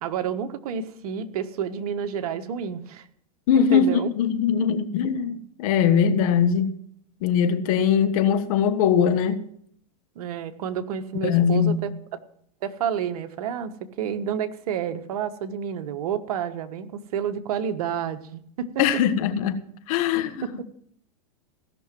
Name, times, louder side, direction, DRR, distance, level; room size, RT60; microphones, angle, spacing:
voice 1, 0.0-3.0 3.5-4.1 10.1-11.9 12.6-18.7 20.4-20.6, right 8 dB, 65° right, 1.3 m, -29 dB
voice 2, 3.5-6.7 7.2-9.4 11.2-11.9 18.8-19.6 19.9-20.5, left 7 dB, 60° left, 1.5 m, -21 dB
16.5 x 6.2 x 7.5 m
hypercardioid pair, 115°, 20 cm